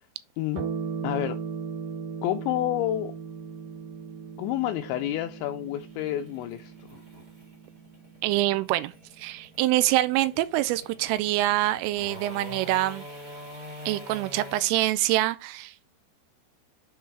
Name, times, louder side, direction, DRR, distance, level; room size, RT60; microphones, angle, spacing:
sound 1, 0.5-9.4, right 6 dB, 55° right, 2.6 m, -38 dB
voice 1, 1.0-1.4 2.2-3.1 4.4-6.7, left 13 dB, 85° left, 2.6 m, -29 dB
sound 2, 2.8-14.6, equal, 30° right, 1.7 m, -45 dB
voice 2, 8.2-13.1 13.9-15.7, right 16 dB, 90° right, 3.2 m, -25 dB
8.8 x 4.0 x 4.6 m
omnidirectional pair, 5.7 m